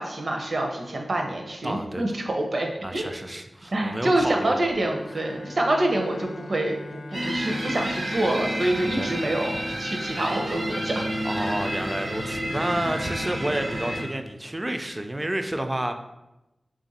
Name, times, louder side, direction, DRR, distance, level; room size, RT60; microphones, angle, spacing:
voice 1, 0.0-3.1 3.7-11.0, right 1 dB, 65° right, 2 dB, 0.6 m, -26 dB
voice 2, 1.6-2.0 2.8-4.6 9.0-9.1 11.2-16.0, right 1 dB, 25° right, 6 dB, 0.3 m, -30 dB
Bowed string instrument, 4.8-9.7, left 2 dB, 55° left, 0.3 m, -43 dB
sound 1, 7.1-14.0, equal, 85° right, 1.1 m, -30 dB
3.3 x 2.5 x 4.0 m, 0.94 s
wide cardioid pair, 70°, 0 cm